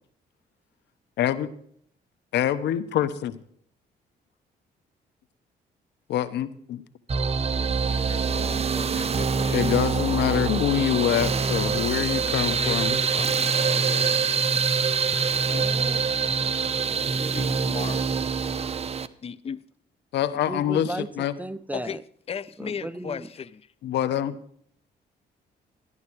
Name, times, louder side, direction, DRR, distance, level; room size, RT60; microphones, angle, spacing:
voice 1, 1.2-1.5 2.3-3.4 6.1-6.8 9.5-13.0 15.5-15.6 20.1-21.3 23.8-24.4, left 11 dB, 80° left, 1.1 m, -25 dB
sound 1, 7.1-19.1, right 5 dB, 35° right, 0.9 m, -25 dB
voice 2, 7.4-10.4 12.2-15.3 17.3-18.2 18.6-18.7 19.2-19.6 21.7-22.0 22.3-23.6, left 7 dB, 35° left, 0.7 m, -38 dB
voice 3, 15.5-16.1 17.2-18.0 20.5-22.0 22.6-23.3, right 1 dB, 10° right, 0.6 m, -36 dB
14.0 x 11.0 x 4.8 m
cardioid pair, 95°, 18 cm